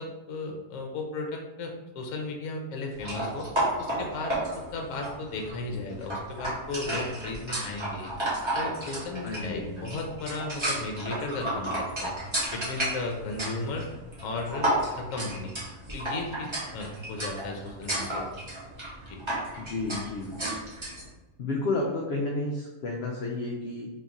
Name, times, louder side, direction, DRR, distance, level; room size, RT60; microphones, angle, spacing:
voice 1, 0.0-3.5 3.8-8.1 8.5-12.2 12.5-13.9 14.2-15.5 15.9-18.3 19.0-19.2, left 2 dB, 70° left, 2 dB, 0.9 m, -35 dB
sound 1, 3.0-21.1, right 1 dB, 25° right, 0.7 m, -33 dB
voice 2, 9.2-9.8 19.6-20.4 21.4-23.9, left 2 dB, 85° left, -2 dB, 0.5 m, -31 dB
2.9 x 2.4 x 3.9 m, 1.1 s
omnidirectional pair, 1.6 m